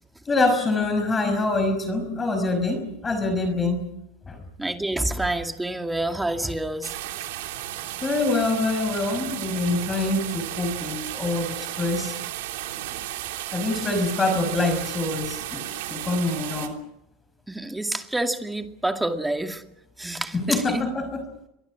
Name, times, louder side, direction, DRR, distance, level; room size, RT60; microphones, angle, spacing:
voice 1, 0.3-3.8 4.3-4.4 8.0-12.2 13.5-16.8 20.3-21.2, left 2 dB, 20° left, 7 dB, 5.5 m, -25 dB
voice 2, 4.6-7.0 17.5-19.6 20.0-20.9, right 1 dB, 5° right, 5 dB, 2.3 m, -28 dB
sound 1, 6.8-16.7, right 14 dB, 85° right, 3.3 m, -34 dB
28.5 x 23.5 x 6.4 m, 0.84 s
supercardioid pair, 125°, 0 cm